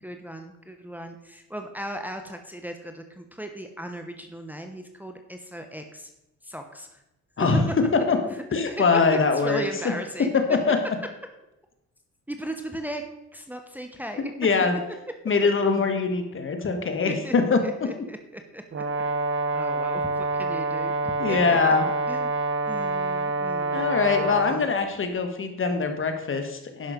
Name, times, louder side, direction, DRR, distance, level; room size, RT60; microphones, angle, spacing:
voice 1, 0.0-6.1 6.4-7.0 7.4-7.5 8.7-8.8 9.3-10.3 12.3-13.0 13.3-14.3 17.1-17.3 17.6-18.8 19.5-21.7 22.1-22.3 22.7-23.9 24.5-24.7, right 1 dB, 5° right, 5 dB, 1.0 m, -37 dB
voice 2, 8.5-9.6 10.5-10.8 14.4-14.8 15.3-17.6 21.2-21.8 23.7-26.9, left 4 dB, 40° left, 6 dB, 1.7 m, -23 dB
Brass instrument, 18.7-24.6, right 3 dB, 45° right, 1.1 m, -27 dB
11.0 x 6.0 x 5.2 m, 0.92 s
cardioid pair, 90°, 30 cm